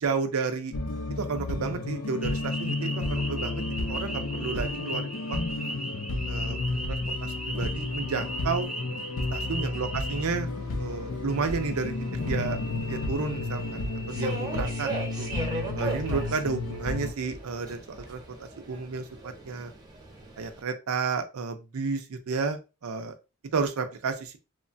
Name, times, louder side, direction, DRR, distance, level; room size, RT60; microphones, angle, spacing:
voice 1, 0.0-0.7 1.2-5.5 6.3-6.6 6.9-8.7 9.3-10.5 10.8-11.9 12.2-12.6 12.9-14.9 15.2-15.3 15.8-19.7 20.4-23.2 23.5-24.4, right 4 dB, 70° right, 8 dB, 0.5 m, -32 dB
sound 1, 0.7-17.1, left 2 dB, 65° left, 0.4 m, -32 dB
sound 2, 2.2-10.2, right 1 dB, ahead, 0.4 m, -37 dB
Subway metro underground, 10.1-20.6, right 2 dB, 20° right, 0.7 m, -39 dB
3.1 x 2.1 x 2.5 m, 0.29 s
head